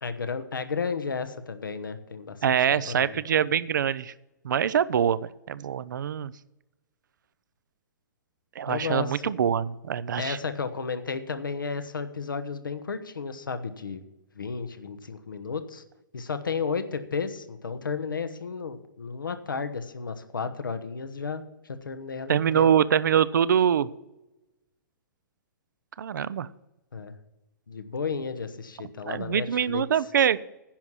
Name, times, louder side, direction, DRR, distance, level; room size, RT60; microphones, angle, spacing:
voice 1, 0.0-3.2 8.7-9.2 10.2-14.0 14.3-15.8 16.1-21.4 21.7-22.7 26.9-27.1 27.7-29.8, left 5 dB, 80° left, 10 dB, 1.1 m, -33 dB
voice 2, 2.4-4.1 4.4-6.3 8.6-10.4 22.3-23.9 26.0-26.5 29.1-30.4, right 8 dB, 65° right, 18 dB, 0.5 m, -24 dB
10.5 x 5.9 x 8.0 m, 0.96 s
figure-of-eight pair, 120°, 11 cm